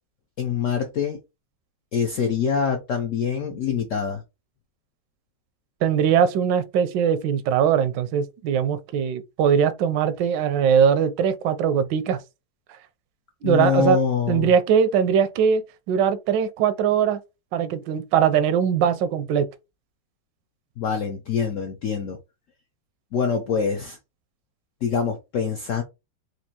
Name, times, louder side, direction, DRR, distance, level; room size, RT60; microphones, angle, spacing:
voice 1, 0.4-1.2 1.9-4.2 13.4-14.5 20.8-22.2 23.1-24.0 24.8-25.8, left 6 dB, 75° left, 0.7 m, -25 dB
voice 2, 5.8-12.2 13.4-14.0 14.3-15.6 15.9-17.2 17.5-19.5, right 8 dB, 80° right, 1.2 m, -21 dB
4.4 x 2.5 x 2.8 m
omnidirectional pair, 1.9 m